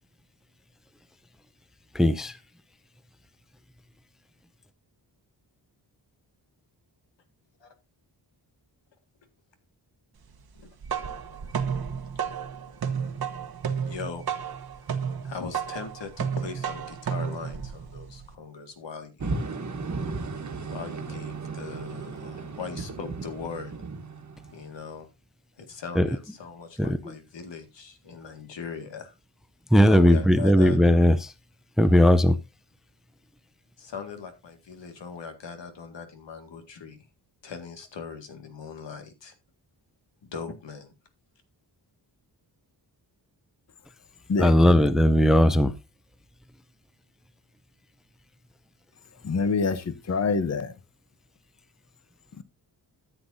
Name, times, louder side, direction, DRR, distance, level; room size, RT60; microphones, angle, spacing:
voice 1, 1.9-2.3 26.0-26.1 26.8-27.0 29.7-31.2 31.8-32.3 44.4-45.7, equal, ahead, 0.5 m, -18 dB
sound 1, 10.6-18.3, right 7 dB, 60° right, 1.1 m, -32 dB
voice 2, 13.9-14.2 15.2-19.3 20.7-23.7 24.5-25.1 25.7-29.1 29.9-30.8 33.8-37.0 37.4-39.3 40.2-40.9, left 5 dB, 90° left, 2.0 m, -39 dB
sound 2, 19.2-24.9, right 3 dB, 40° right, 1.4 m, -35 dB
voice 3, 49.2-50.7, left 4 dB, 40° left, 0.8 m, -25 dB
13.5 x 8.0 x 2.7 m
wide cardioid pair, 155°, 43 cm